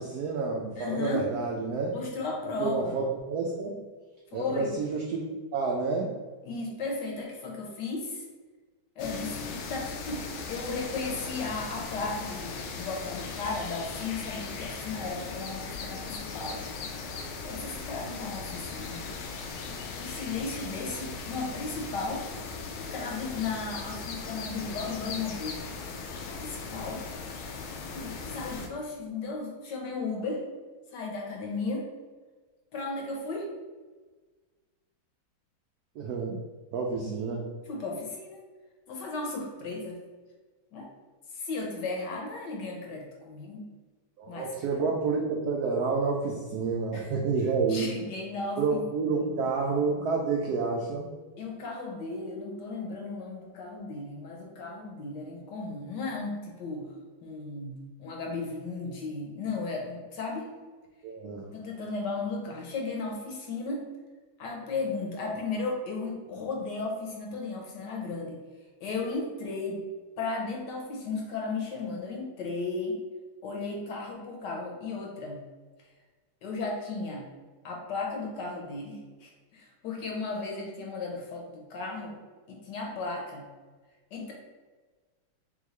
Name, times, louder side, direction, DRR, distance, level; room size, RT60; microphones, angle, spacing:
voice 1, 0.0-2.0 2.6-3.8 4.3-5.2 5.5-6.1 36.0-36.4 36.7-37.5 44.2-47.9 48.6-51.1 61.0-61.5, right 4 dB, 90° right, -1 dB, 0.8 m, -29 dB
voice 2, 0.8-1.3 1.9-3.0 4.3-4.8 6.4-8.2 9.0-10.2 10.5-16.6 17.4-19.0 20.0-22.3 22.9-25.7 26.3-27.0 27.9-30.4 30.9-31.9 32.7-33.5 36.9-37.1 37.7-38.4 38.9-40.0 40.7-40.9 41.3-43.7 44.3-44.8 46.9-47.1 47.7-48.8 49.3-49.4 51.4-56.9 57.2-60.5 61.5-63.8 64.4-68.4 68.8-69.9 70.2-73.0 73.4-75.4 76.4-77.3 77.6-82.2 82.5-83.5 84.1-84.3, left 3 dB, 65° left, 0 dB, 1.3 m, -35 dB
sound 1, 9.0-28.7, left 4 dB, 90° left, 1.5 m, -38 dB
3.7 x 3.7 x 3.1 m, 1.4 s
omnidirectional pair, 2.2 m